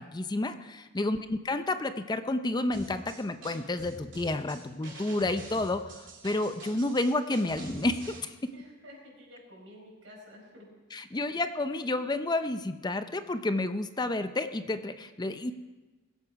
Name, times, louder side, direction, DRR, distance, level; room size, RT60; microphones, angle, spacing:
voice 1, 0.0-5.9 6.2-8.3 10.9-15.5, left 2 dB, 20° left, 10 dB, 0.6 m, -30 dB
sound 1, 2.7-8.2, right 2 dB, 70° right, 3.3 m, -46 dB
voice 2, 8.5-10.7 11.1-11.3, left 1 dB, 85° right, -2 dB, 5.1 m, -51 dB
20.5 x 8.2 x 4.7 m, 1.2 s
head